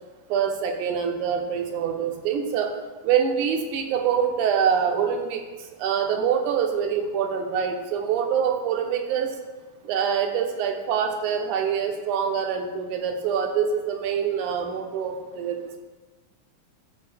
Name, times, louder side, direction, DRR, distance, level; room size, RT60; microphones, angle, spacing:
voice 1, 0.3-2.8 3.0-5.4 5.8-9.3 9.8-15.8, right 7 dB, 85° right, 4 dB, 2.3 m, -25 dB
12.5 x 4.6 x 3.4 m, 1.2 s
omnidirectional pair, 3.4 m